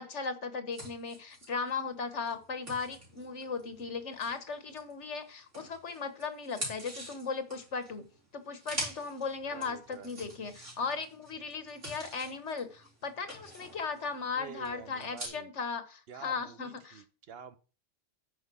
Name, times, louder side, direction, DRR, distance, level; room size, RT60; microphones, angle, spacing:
voice 1, 0.0-8.0 8.3-17.0, left 5 dB, 75° left, 10 dB, 1.6 m, -37 dB
sound 1, 0.7-5.1 5.5-15.3, right 1 dB, 85° right, 4.6 m, -45 dB
voice 2, 9.5-10.1 14.3-15.5 16.1-17.6, right 7 dB, 60° right, 13 dB, 1.0 m, -48 dB
9.3 x 5.6 x 6.1 m, 0.36 s
omnidirectional pair, 1.2 m